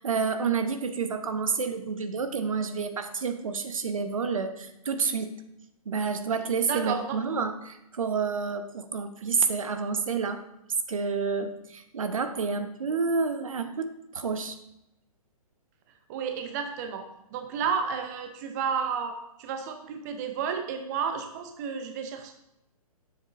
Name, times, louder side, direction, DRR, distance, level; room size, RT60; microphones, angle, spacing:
voice 1, 0.0-5.4 5.9-10.4 10.9-14.6, right 5 dB, 65° right, 8 dB, 0.9 m, -29 dB
voice 2, 6.7-7.2 16.1-17.0 17.3-22.3, right 6 dB, 30° right, 6 dB, 0.6 m, -31 dB
9.7 x 7.3 x 2.6 m, 0.85 s
figure-of-eight pair, 130°, 19 cm